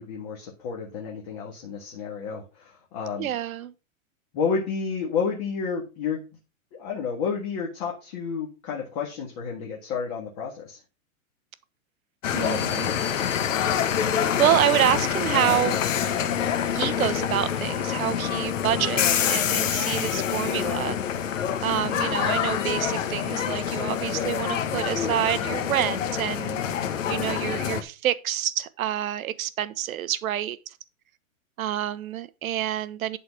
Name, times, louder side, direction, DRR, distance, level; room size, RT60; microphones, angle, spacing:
voice 1, 0.0-3.3 4.3-6.2 6.7-10.8, left 5 dB, 25° left, 1.7 m, -30 dB
voice 2, 3.2-3.7 12.3-12.9 14.4-15.8 16.7-21.0 21.6-26.6 27.1-30.6 31.6-33.2, right 11 dB, 75° right, 0.9 m, -27 dB
sound 1, 12.2-27.8, left 8 dB, 60° left, 1.2 m, -26 dB
11.0 x 4.2 x 4.8 m
supercardioid pair, 180°, 42 cm